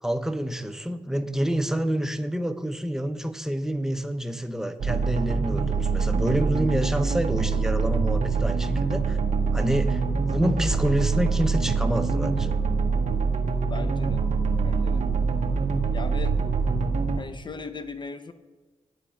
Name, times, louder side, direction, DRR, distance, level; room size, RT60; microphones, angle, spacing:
voice 1, 0.0-9.2 9.5-12.6, equal, 5° right, 8 dB, 0.8 m, -28 dB
sound 1, 4.8-17.2, right 4 dB, 80° right, 0.8 m, -24 dB
voice 2, 13.7-14.2 14.6-15.3 15.9-16.4 17.2-18.3, left 4 dB, 40° left, 10 dB, 0.8 m, -38 dB
9.8 x 4.4 x 6.5 m, 1.3 s
cardioid pair, 50°, 12 cm